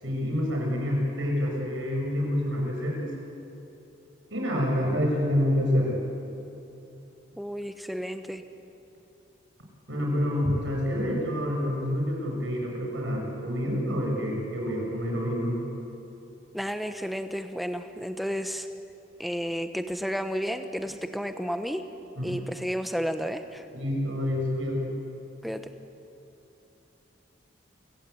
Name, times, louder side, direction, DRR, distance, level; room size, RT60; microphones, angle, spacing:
voice 1, 0.0-3.1 4.3-6.0 9.9-15.6 22.2-22.3 23.7-25.0, equal, 80° right, -1 dB, 7.3 m, -27 dB
voice 2, 7.4-8.4 16.5-18.7 19.2-21.8 22.2-23.7 25.4-25.6, equal, ahead, 8 dB, 1.0 m, -32 dB
28.5 x 17.0 x 8.4 m, 2.9 s
head